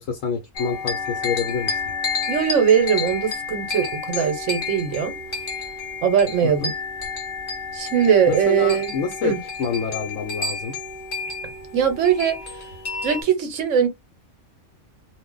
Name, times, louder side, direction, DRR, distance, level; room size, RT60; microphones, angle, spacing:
voice 1, 0.0-1.7 6.4-6.7 8.3-10.8, left 6 dB, 75° left, 1.0 m, -27 dB
sound 1, 0.5-13.2, left 5 dB, 45° left, 1.0 m, -30 dB
voice 2, 2.3-5.1 6.0-6.7 7.7-8.9 9.2-9.4 11.7-12.4 13.0-13.9, right 8 dB, 70° right, 1.1 m, -20 dB
2.5 x 2.0 x 3.7 m
omnidirectional pair, 1.4 m